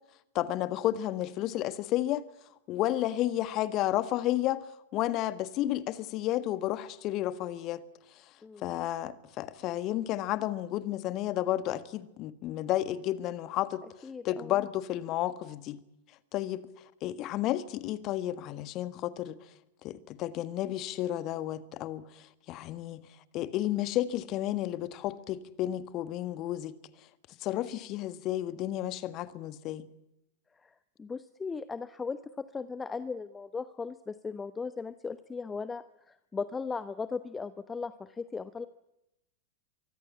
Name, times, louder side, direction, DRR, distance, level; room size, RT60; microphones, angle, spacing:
voice 1, 0.3-2.3 2.7-4.6 4.9-7.8 8.6-13.8 14.2-15.8 16.3-16.6 17.0-19.4 19.8-23.1 23.3-26.8 27.4-29.9, left 14 dB, 35° left, 1.6 m, -32 dB
voice 2, 14.0-14.6 30.6-30.7 31.0-38.7, left 5 dB, 15° left, 0.9 m, -37 dB
24.5 x 24.0 x 8.6 m
figure-of-eight pair, 90°, 0 cm